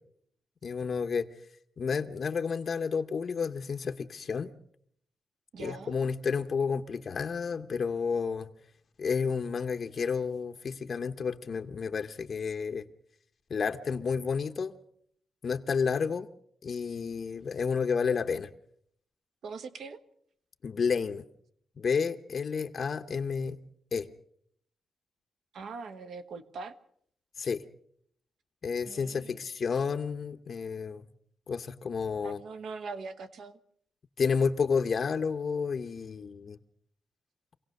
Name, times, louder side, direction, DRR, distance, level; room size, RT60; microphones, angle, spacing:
voice 1, 0.6-1.3 1.8-4.5 5.6-8.5 9.0-12.8 13.5-14.8 15.4-16.3 16.6-18.5 20.6-21.2 21.8-23.6 23.9-24.1 27.4-27.6 28.6-31.0 31.5-32.4 34.2-36.6, left 5 dB, 45° left, 7 dB, 0.8 m, -31 dB
voice 2, 5.5-6.0 19.4-20.0 25.5-26.7 28.9-29.4 32.2-33.6, right 4 dB, 65° right, 9 dB, 1.4 m, -42 dB
26.0 x 17.5 x 6.5 m, 0.68 s
wide cardioid pair, 165°, 0 cm